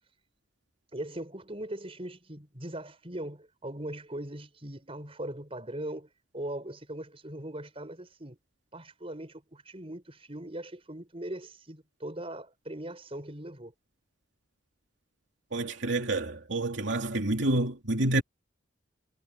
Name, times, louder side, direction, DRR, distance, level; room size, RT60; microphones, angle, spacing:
voice 1, 0.9-8.4 8.7-13.7, right 1 dB, 30° right, 6.2 m, -40 dB
voice 2, 15.5-18.2, right 2 dB, 70° right, 2.8 m, -28 dB
head